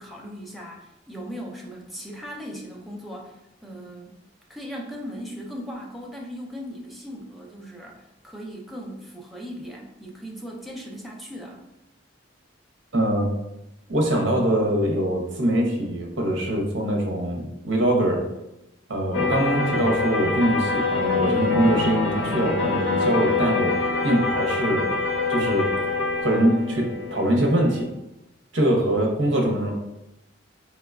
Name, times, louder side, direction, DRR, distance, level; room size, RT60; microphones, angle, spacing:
voice 1, 0.0-4.2 4.5-11.6, equal, ahead, -2 dB, 0.5 m, -38 dB
voice 2, 12.9-13.3 13.9-18.2 18.9-23.7 24.0-24.9 25.3-25.7 26.2-27.9 28.5-29.7, right 1 dB, 75° right, 1 dB, 0.7 m, -23 dB
sound 1, 19.1-27.8, left 3 dB, 75° left, 0.6 m, -25 dB
4.7 x 2.2 x 2.3 m, 0.90 s
head